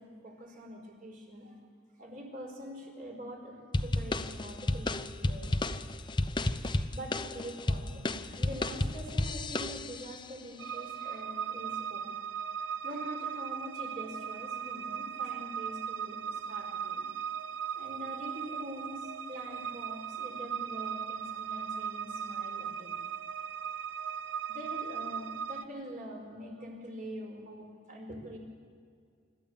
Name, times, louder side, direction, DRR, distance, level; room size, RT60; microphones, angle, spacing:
voice 1, 0.0-1.6 2.0-5.5 6.4-12.0 12.8-17.0 17.7-23.0 24.2-28.4, equal, 45° right, 1 dB, 4.8 m, -44 dB
sound 1, 3.7-10.2, left 2 dB, 25° left, 0.7 m, -32 dB
sound 2, 10.6-25.6, right 7 dB, 70° right, 0.8 m, -38 dB
25.5 x 13.5 x 8.6 m, 2.2 s
head